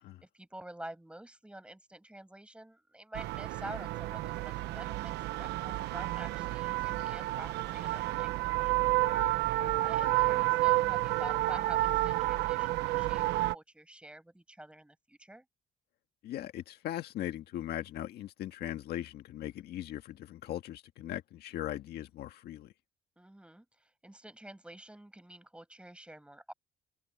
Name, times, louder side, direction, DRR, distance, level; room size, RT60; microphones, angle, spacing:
voice 1, 0.2-5.1 5.4-8.7 9.8-13.2 13.5-15.4 23.2-26.5, right 1 dB, 5° right, 6.2 m, -48 dB
sound 1, 3.1-13.6, right 18 dB, 85° right, 1.0 m, -30 dB
voice 2, 16.2-22.7, left 13 dB, 70° left, 1.8 m, -39 dB
cardioid pair, 110°, 17 cm